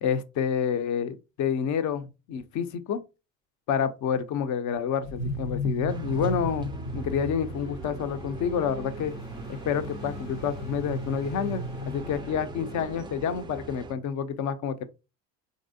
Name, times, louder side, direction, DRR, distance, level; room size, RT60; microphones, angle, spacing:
voice 1, 0.0-3.0 3.7-9.1 9.5-14.8, left 7 dB, 45° left, 0.5 m, -29 dB
sound 1, 5.0-12.9, equal, 85° left, 0.7 m, -36 dB
sound 2, 5.9-13.9, right 5 dB, 15° right, 0.3 m, -41 dB
3.1 x 2.6 x 2.6 m
hypercardioid pair, 65°, 40 cm